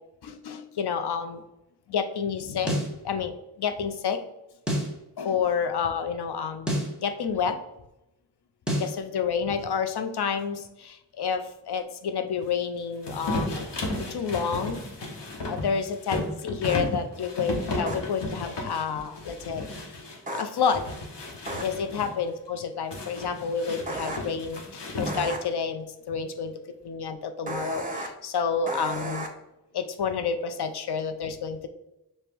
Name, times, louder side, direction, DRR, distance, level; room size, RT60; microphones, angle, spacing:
voice 1, 0.2-1.4 1.9-2.8 3.0-4.2 5.2-6.7 7.0-7.6 8.8-13.7 14.1-14.8 15.4-19.7 20.3-20.9 21.6-26.5 26.8-29.3 29.7-31.7, left 6 dB, 75° left, 8 dB, 0.6 m, -29 dB
sound 1, 2.7-3.0 4.7-5.0 6.7-7.0 8.7-9.0, equal, ahead, 1.2 m, -27 dB
sound 2, 13.0-20.2 20.6-22.1 22.9-25.5, left 1 dB, 90° left, 1.0 m, -34 dB
sound 3, 16.7-16.8 17.9-18.0 20.3-20.4 21.5-21.6 23.9-24.2 25.1-25.4 27.5-28.1 28.7-29.3, right 2 dB, 20° right, 0.8 m, -33 dB
5.1 x 2.2 x 4.4 m, 0.90 s
cardioid pair, 40°, 40 cm